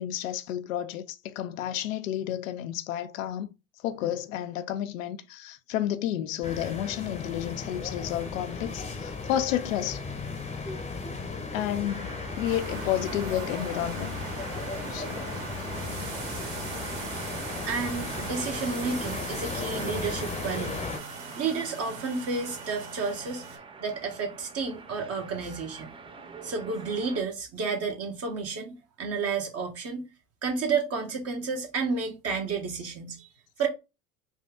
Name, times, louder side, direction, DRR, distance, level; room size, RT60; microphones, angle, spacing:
voice 1, 0.0-3.5 3.8-10.0 11.5-14.1 14.9-15.3, left 11 dB, 75° left, 0.6 m, -31 dB
sound 1, 6.4-21.0, left 4 dB, 15° left, 0.8 m, -36 dB
sound 2, 11.8-27.2, right 4 dB, 15° right, 0.4 m, -45 dB
sound 3, 12.4-23.6, right 4 dB, 65° right, 1.9 m, -40 dB
voice 2, 17.6-20.9 21.3-25.9 26.4-30.0 30.4-33.3 33.6-33.7, right 4 dB, 35° right, 1.1 m, -31 dB
4.3 x 2.3 x 3.4 m
hypercardioid pair, 85°, 40 cm